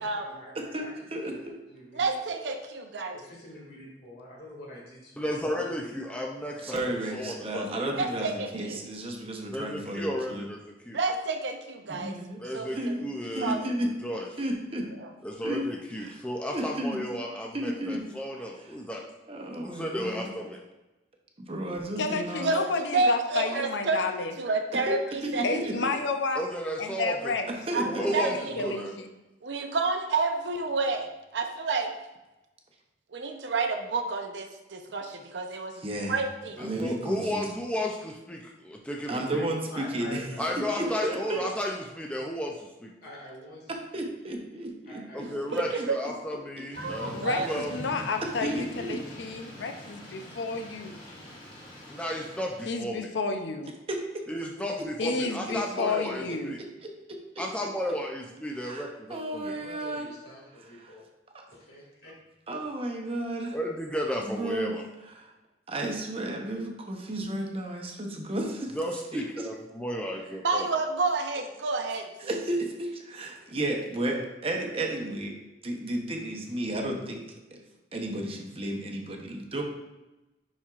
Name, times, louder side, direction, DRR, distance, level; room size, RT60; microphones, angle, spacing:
voice 1, 0.0-1.4 1.7-2.5 3.1-6.3 6.5-6.7 39.7-40.9 41.3-41.5 43.0-44.0 44.9-45.8 59.4-61.0 61.5-62.1, left 1 dB, 60° left, -3 dB, 2.2 m, -47 dB
voice 2, 0.6-1.6 6.6-10.4 11.9-12.4 12.7-13.9 14.4-14.9 15.4-15.7 16.0-16.2 16.5-17.2 17.5-18.1 18.6-18.7 19.3-20.3 21.4-22.5 24.7-25.0 25.2-26.0 27.5-28.2 35.8-36.2 36.6-37.5 39.1-40.2 40.6-41.5 43.7-45.9 47.4-47.6 48.2-49.0 53.9-54.2 54.8-55.6 56.0-57.7 58.5-60.1 60.8-60.9 61.3-61.5 62.5-63.6 64.3-65.3 65.7-68.8 69.1-69.5 72.2-75.4 75.6-77.3 77.5-77.6 77.9-79.6, right 1 dB, 35° right, 2 dB, 0.9 m, -33 dB
voice 3, 1.9-3.2 8.0-8.8 10.9-12.1 12.5-13.1 13.4-13.6 15.0-15.1 22.4-24.1 24.4-25.7 27.7-28.8 29.4-31.9 33.1-35.7 36.1-36.6 45.5-46.0 46.8-47.5 70.4-72.1, right 3 dB, 75° right, 5 dB, 0.7 m, -29 dB
voice 4, 5.2-7.7 9.5-10.6 10.8-11.0 12.4-14.3 15.2-19.0 19.6-20.6 26.3-27.3 27.8-28.9 36.6-39.5 40.4-42.9 45.1-47.7 51.9-53.1 54.3-56.6 57.4-59.6 63.5-64.8 68.7-70.7, equal, 5° left, 0 dB, 0.5 m, -33 dB
voice 5, 22.0-24.3 25.4-26.4 26.8-27.5 28.0-29.1 47.1-51.0 52.7-53.7 55.0-56.6, left 4 dB, 80° left, 5 dB, 0.6 m, -31 dB
Thunder / Rain, 46.7-52.7, equal, 30° left, 1.5 m, -44 dB
10.5 x 4.3 x 2.4 m, 1.0 s
head